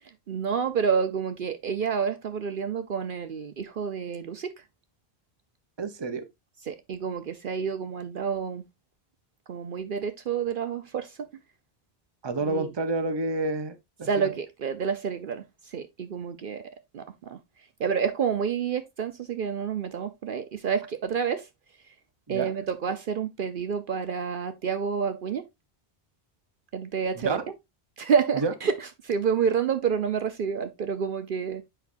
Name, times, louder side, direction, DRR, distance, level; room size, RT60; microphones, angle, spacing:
voice 1, 0.3-4.5 6.7-8.6 9.5-11.3 12.4-12.7 14.0-17.4 17.8-21.5 22.3-25.4 26.7-27.4 28.0-31.6, right 6 dB, 60° right, 0.8 m, -29 dB
voice 2, 5.8-6.2 12.2-14.3 22.3-22.5 27.2-27.4 28.4-28.5, right 3 dB, 30° right, 0.8 m, -29 dB
8.2 x 5.5 x 2.5 m
omnidirectional pair, 1.0 m